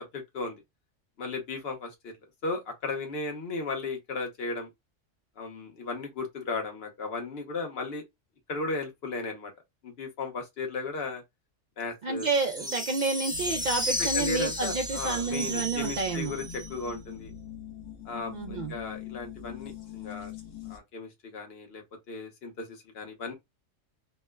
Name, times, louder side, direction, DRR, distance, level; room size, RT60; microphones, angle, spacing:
voice 1, 0.1-0.6 1.2-2.1 2.4-4.7 5.4-8.0 8.5-9.5 9.8-11.2 11.8-12.3 12.6-12.7 14.0-17.3 18.0-20.3 20.7-23.3, left 3 dB, 55° left, 1.1 m, -35 dB
voice 2, 12.0-16.3 18.3-18.7, right 3 dB, 75° right, 0.4 m, -29 dB
sound 1, 12.2-16.9, equal, 5° right, 0.5 m, -34 dB
sound 2, 13.3-20.8, left 7 dB, 80° left, 1.2 m, -43 dB
4.4 x 2.1 x 2.2 m
omnidirectional pair, 1.3 m